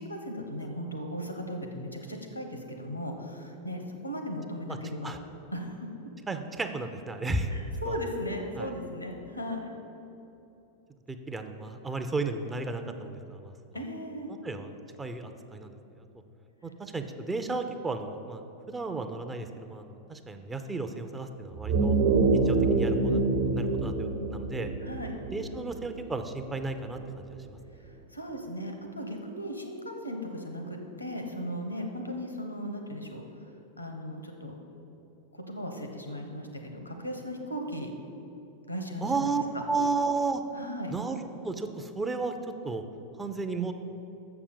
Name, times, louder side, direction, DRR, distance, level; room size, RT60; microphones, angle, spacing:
voice 1, 0.0-5.2 5.5-5.7 7.5-9.7 13.7-14.3 24.8-25.1 27.8-33.2 33.8-34.6 35.3-37.9 38.7-39.6 40.5-40.9, equal, 90° left, 4 dB, 1.0 m, -37 dB
voice 2, 6.3-7.5 7.8-7.9 8.6-8.7 11.1-13.5 14.4-14.7 15.0-16.1 16.6-18.4 18.7-21.9 22.4-23.2 23.5-24.7 25.3-27.4 39.0-40.4 40.9-42.3 42.6-42.8 43.2-43.7, right 3 dB, 15° right, 7 dB, 0.5 m, -33 dB
sound 1, 21.5-26.3, right 3 dB, 60° right, 1.1 m, -26 dB
7.0 x 6.0 x 6.9 m, 2.9 s
figure-of-eight pair, 90°, 0 cm